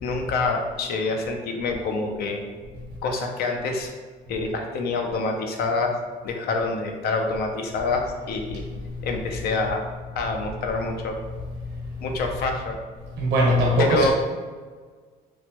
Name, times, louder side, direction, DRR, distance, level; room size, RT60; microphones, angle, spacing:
voice 1, 0.0-2.4 3.0-3.9 4.3-6.0 6.2-8.6 9.0-9.8 10.2-11.2 12.0-12.8 13.8-14.1, left 3 dB, 70° left, 3 dB, 0.5 m, -26 dB
voice 2, 13.2-14.1, right 1 dB, 80° right, -2 dB, 0.9 m, -20 dB
3.1 x 2.1 x 2.9 m, 1.5 s
cardioid pair, 110°, 17 cm